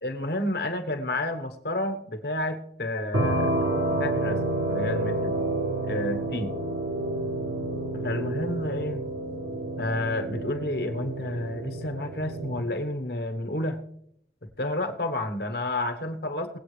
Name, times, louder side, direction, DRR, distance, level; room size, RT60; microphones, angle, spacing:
voice 1, 0.0-3.5 3.9-4.4 4.7-5.5 5.8-6.5 7.9-9.0 9.8-13.8 14.4-16.6, left 1 dB, 60° left, 6 dB, 1.2 m, -30 dB
sound 1, 3.1-12.6, right 2 dB, 80° right, 1.5 m, -29 dB
20.5 x 8.4 x 3.4 m, 0.72 s
head